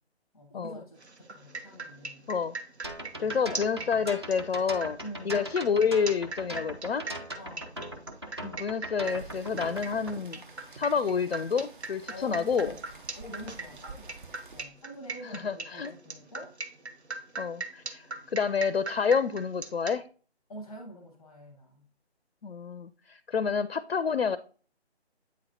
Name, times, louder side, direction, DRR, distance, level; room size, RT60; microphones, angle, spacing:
voice 1, 0.3-2.2 3.1-4.1 5.0-5.5 7.4-7.8 12.1-14.2 14.5-16.5 20.5-21.9, equal, 5° left, 0.8 m, -46 dB
sound 1, 1.0-20.0, right 3 dB, 75° right, 1.0 m, -40 dB
sound 2, 2.8-10.1, right 1 dB, 25° right, 0.5 m, -40 dB
voice 2, 3.2-5.0 5.2-7.1 8.4-10.4 10.7-12.8 15.2-15.9 17.4-20.1 22.4-24.4, left 6 dB, 65° left, 0.4 m, -29 dB
Rain, 9.0-14.6, right 3 dB, 50° right, 1.0 m, -49 dB
8.5 x 4.1 x 2.9 m
figure-of-eight pair, 150°, 33 cm